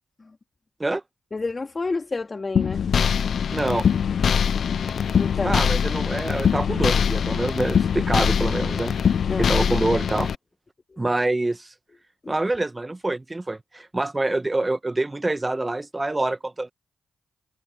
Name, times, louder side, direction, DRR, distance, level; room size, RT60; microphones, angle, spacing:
voice 1, 1.3-2.8 5.2-5.5 9.3-9.8 10.9-11.0 12.2-12.4, left 3 dB, 35° left, 2.5 m, -30 dB
sound 1, 2.6-10.4, left 7 dB, 65° left, 0.6 m, -22 dB
voice 2, 3.5-3.9 5.4-8.9 9.4-10.3 11.0-11.7 12.3-16.7, right 2 dB, 25° right, 1.5 m, -26 dB
supercardioid pair, 45°, 0 cm